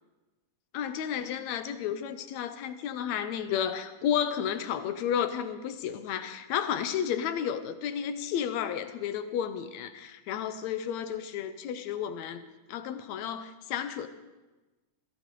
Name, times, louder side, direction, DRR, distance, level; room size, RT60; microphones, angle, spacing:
voice 1, 0.7-14.1, left 9 dB, 70° left, 10 dB, 1.8 m, -32 dB
21.0 x 16.0 x 3.8 m, 1.2 s
omnidirectional pair, 3.8 m